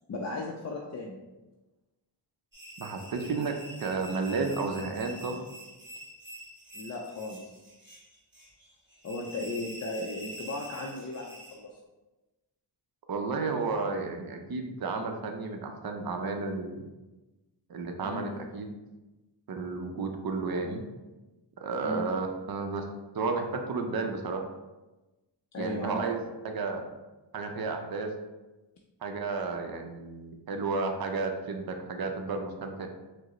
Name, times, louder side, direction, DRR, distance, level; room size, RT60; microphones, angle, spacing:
voice 1, 0.1-1.2 6.7-7.4 9.0-11.8 18.0-18.3 21.8-22.1 25.5-26.1, left 2 dB, 40° left, -1 dB, 0.4 m, -36 dB
sound 1, 2.5-11.6, equal, 25° right, 1.1 m, -46 dB
voice 2, 2.8-5.4 13.1-16.9 17.7-18.7 19.5-20.8 21.6-22.9 23.1-24.4 25.6-26.2 26.4-26.8 27.3-28.1 29.0-32.9, right 4 dB, 55° right, 4 dB, 0.5 m, -32 dB
4.6 x 2.0 x 3.0 m, 1.1 s
wide cardioid pair, 85°, 45 cm